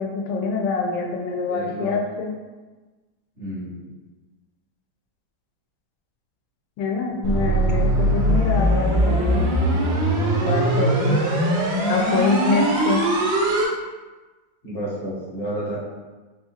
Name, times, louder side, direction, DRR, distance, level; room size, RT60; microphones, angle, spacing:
voice 1, 0.0-2.3 6.8-9.7 10.4-11.2 11.9-13.0, left 4 dB, 90° left, 1 dB, 1.3 m, -25 dB
voice 2, 1.5-2.0 3.4-4.0 14.6-15.8, right 1 dB, 45° left, -9 dB, 0.8 m, -31 dB
sound 1, 7.2-13.6, right 1 dB, 90° right, 1.4 m, -20 dB
4.2 x 2.4 x 2.7 m, 1.2 s
omnidirectional pair, 2.0 m